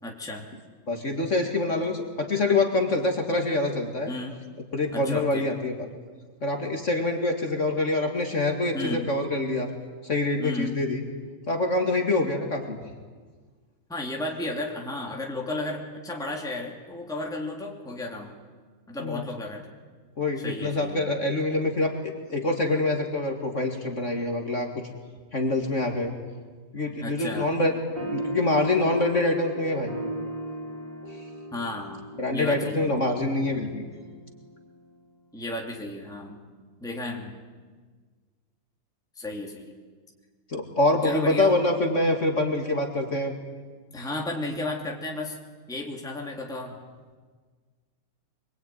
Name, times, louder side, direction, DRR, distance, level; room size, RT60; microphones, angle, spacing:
voice 1, 0.0-0.5 4.1-4.4 4.9-5.5 8.7-9.1 10.4-10.8 13.9-18.4 18.9-19.7 20.4-21.1 27.0-27.5 31.5-33.0 35.3-36.4 36.8-37.4 39.2-39.7 41.0-41.6 43.9-45.4 45.7-46.8, left 2 dB, ahead, 0 dB, 2.7 m, -33 dB
voice 2, 0.9-4.1 4.7-5.9 6.4-9.7 10.0-11.0 11.5-12.8 19.0-19.2 20.2-24.8 25.3-26.1 26.7-27.7 28.1-30.0 32.2-33.8 40.5-43.4, left 2 dB, 35° left, 3 dB, 2.4 m, -25 dB
sound 1, 28.0-34.8, right 1 dB, 60° right, 4.2 m, -36 dB
24.0 x 22.5 x 9.4 m, 1.5 s
omnidirectional pair, 2.2 m